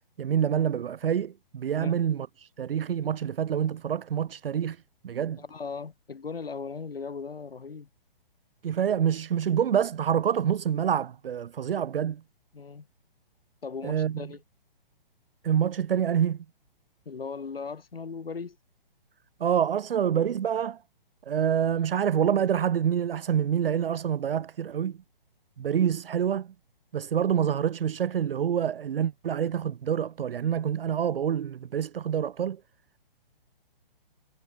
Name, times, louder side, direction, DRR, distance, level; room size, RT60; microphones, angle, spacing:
voice 1, 0.2-4.8 5.0-5.4 8.6-12.2 13.8-14.1 15.4-16.4 19.4-20.8 21.3-25.0 25.6-26.5 26.9-32.6, right 9 dB, 75° right, 0.7 m, -26 dB
voice 2, 5.4-7.9 12.5-12.9 13.6-14.4 17.1-18.6, left 5 dB, 80° left, 4.4 m, -38 dB
hypercardioid pair, 140°, 29 cm